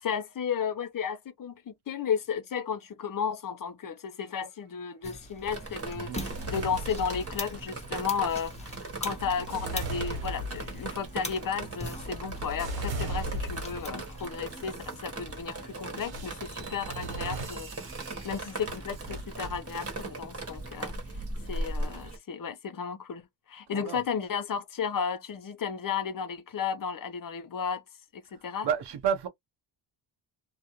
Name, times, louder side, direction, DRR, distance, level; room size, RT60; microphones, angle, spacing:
voice 1, 0.0-17.7 18.2-20.9 21.5-27.8 28.1-28.7, left 7 dB, 45° left, 0.7 m, -33 dB
sound 1, 5.0-14.3, left 1 dB, 15° left, 0.9 m, -43 dB
Drip, 5.5-22.2, right 2 dB, 30° right, 1.2 m, -39 dB
voice 2, 5.9-6.3 23.7-24.1 28.3-29.3, right 8 dB, 60° right, 0.8 m, -31 dB
sound 2, 6.2-7.8 8.5-14.0 14.6-14.9 16.0-20.0, right 1 dB, 85° right, 1.2 m, -39 dB
2.4 x 2.1 x 2.9 m
cardioid pair, 75°, 47 cm